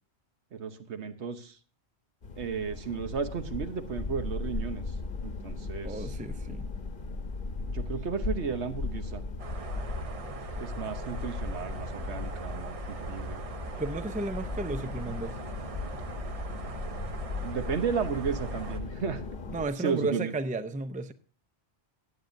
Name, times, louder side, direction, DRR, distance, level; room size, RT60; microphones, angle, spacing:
voice 1, 0.5-1.6 2.4-4.9 5.2-6.1 7.7-9.2 10.6-13.4 17.4-19.2 19.8-20.3, right 6 dB, 85° right, 1.3 m, -34 dB
sound 1, 2.2-19.7, left 3 dB, 55° left, 1.2 m, -37 dB
voice 2, 5.8-6.7 13.8-15.4 19.5-21.1, right 2 dB, 10° right, 0.4 m, -33 dB
sound 2, 9.4-18.8, right 3 dB, 35° right, 0.7 m, -41 dB
16.0 x 9.1 x 2.6 m
omnidirectional pair, 1.1 m